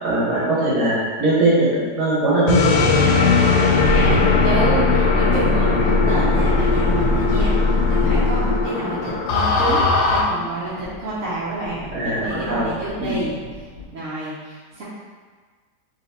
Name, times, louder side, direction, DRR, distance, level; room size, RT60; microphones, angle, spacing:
voice 1, 0.0-2.8 10.4-10.5 11.9-12.7 13.0-13.2, right 2 dB, 80° right, -8 dB, 1.7 m, -20 dB
sound 1, 2.5-10.2, left 3 dB, 75° left, 1.1 m, -18 dB
sound 2, 3.1-4.0 4.3-13.8, left 2 dB, 50° left, 1.0 m, -32 dB
voice 2, 3.8-11.8 12.0-13.3 13.9-14.8, right 2 dB, 60° right, -9 dB, 1.0 m, -28 dB
3.3 x 2.9 x 4.0 m, 1.5 s
omnidirectional pair, 1.8 m